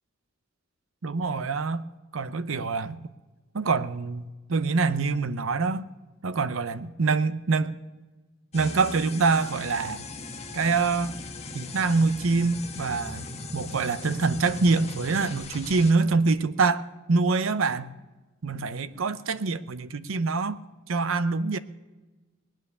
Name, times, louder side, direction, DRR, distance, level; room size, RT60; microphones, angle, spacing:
voice 1, 1.0-1.8 2.1-3.0 3.5-5.9 6.2-7.8 8.5-10.1 10.5-11.2 11.5-13.2 13.5-17.9 18.4-20.6 20.9-21.6, right 4 dB, 70° right, 0.6 m, -25 dB
sound 1, 8.5-15.9, left 3 dB, 30° left, 1.3 m, -39 dB
20.0 x 9.0 x 6.7 m
head